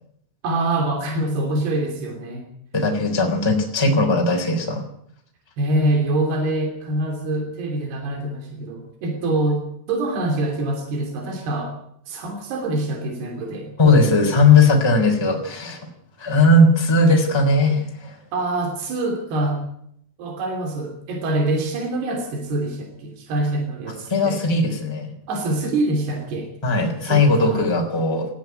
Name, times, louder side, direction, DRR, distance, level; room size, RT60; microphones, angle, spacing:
voice 1, 0.4-2.4 3.9-4.1 5.6-11.8 12.1-13.7 18.3-19.6 20.2-24.4 25.3-26.5 27.0-27.6, right 2 dB, 80° right, 2 dB, 5.2 m, -25 dB
voice 2, 2.7-4.8 13.8-15.8 16.2-18.2 24.1-25.1 26.6-28.3, left 2 dB, 5° left, 2 dB, 3.1 m, -18 dB
19.5 x 14.0 x 9.5 m, 0.71 s
omnidirectional pair, 4.6 m